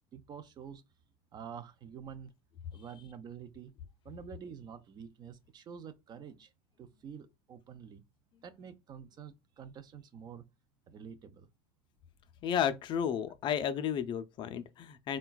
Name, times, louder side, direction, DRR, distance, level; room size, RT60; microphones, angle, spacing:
voice 1, 0.1-0.8 1.3-2.3 2.7-3.7 4.0-6.5 6.8-8.0 8.4-10.5 10.9-11.5, right 7 dB, 35° right, 0.4 m, -48 dB
voice 2, 12.4-15.2, left 8 dB, 40° left, 0.4 m, -32 dB
3.8 x 2.2 x 2.3 m
supercardioid pair, 105°, 12 cm